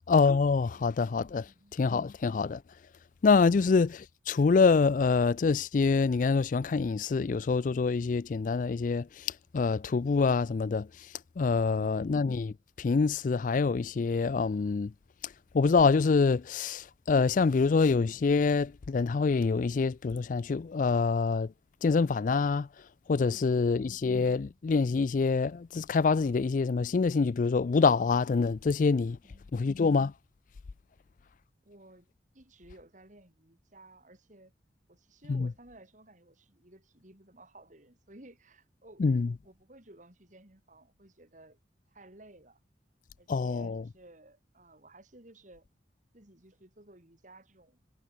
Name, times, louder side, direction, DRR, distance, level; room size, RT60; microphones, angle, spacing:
voice 1, 0.1-2.6 3.2-11.1 11.4-14.9 15.5-21.5 21.8-22.7 23.1-29.2 29.5-30.1 35.3-35.5 39.0-39.3 43.3-43.8, left 4 dB, 45° left, 0.4 m, -26 dB
voice 2, 1.4-1.8 3.5-3.7 11.7-12.1 23.3-23.9 29.2-29.6 31.6-34.5 34.9-41.6 41.9-42.6 43.2-45.7 46.1-47.9, right 1 dB, 45° right, 3.5 m, -56 dB
head